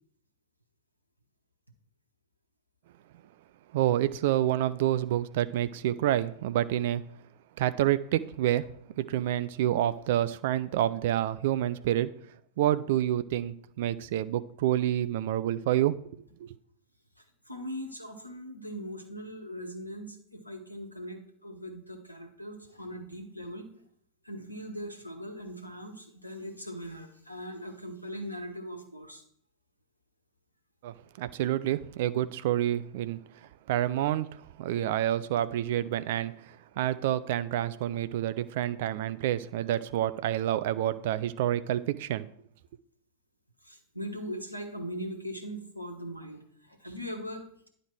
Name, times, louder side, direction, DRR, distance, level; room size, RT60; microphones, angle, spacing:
voice 1, 3.7-7.0 7.6-8.7 9.0-12.1 12.6-16.0 16.4-16.5 30.8-33.2 33.7-34.3 34.6-42.2, right 12 dB, 55° right, 0.4 m, -28 dB
voice 2, 17.4-23.7 24.2-29.2 43.6-47.7, equal, 90° left, 1.2 m, -40 dB
10.0 x 5.0 x 4.6 m
figure-of-eight pair, 90°, 0 cm